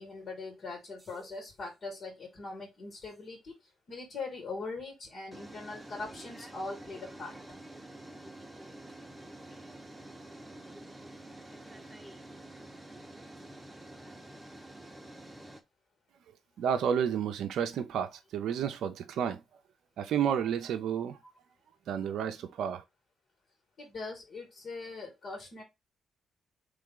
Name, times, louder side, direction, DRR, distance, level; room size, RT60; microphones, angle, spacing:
voice 1, 0.0-3.5 3.9-7.3 23.8-25.6, left 3 dB, 60° left, 2.0 m, -41 dB
sound 1, 1.0-1.4 3.1-3.2 5.3-15.6, right 1 dB, 10° right, 1.0 m, -48 dB
voice 2, 16.6-19.4 20.0-21.2 21.9-22.8, right 8 dB, 75° right, 0.5 m, -31 dB
3.6 x 3.2 x 3.8 m
supercardioid pair, 65°, 0 cm